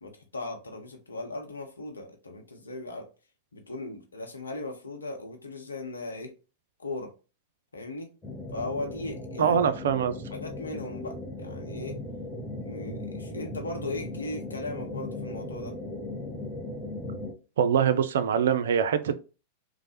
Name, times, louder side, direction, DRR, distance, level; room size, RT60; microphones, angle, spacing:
voice 1, 0.0-3.1 3.5-6.3 6.8-7.1 7.7-8.1 8.5-9.7 10.3-12.0 12.6-15.8, left 2 dB, 80° left, 0.7 m, -37 dB
sound 1, 8.2-17.3, left 2 dB, 15° left, 0.8 m, -38 dB
voice 2, 9.4-10.2 17.6-19.2, right 8 dB, 65° right, 0.3 m, -23 dB
3.1 x 2.0 x 2.8 m
figure-of-eight pair, 90°, 0 cm